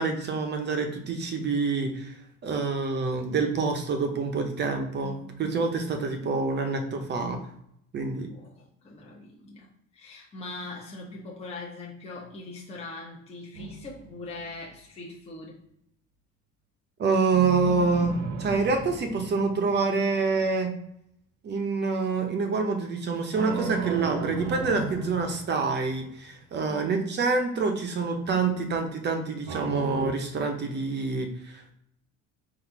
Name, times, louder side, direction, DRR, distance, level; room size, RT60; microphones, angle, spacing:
voice 1, 0.0-2.1 2.4-7.4 7.9-8.3 17.0-20.7 21.4-31.7, right 4 dB, 35° right, 5 dB, 0.7 m, -27 dB
voice 2, 5.0-5.6 8.3-15.6 26.7-27.1, left 2 dB, 20° left, -2 dB, 0.7 m, -42 dB
sound 1, 13.5-14.7 17.3-20.0 23.3-26.1 29.5-30.1, right 4 dB, 75° right, 0.8 m, -35 dB
4.1 x 2.6 x 4.5 m, 0.74 s
cardioid pair, 160°, 30 cm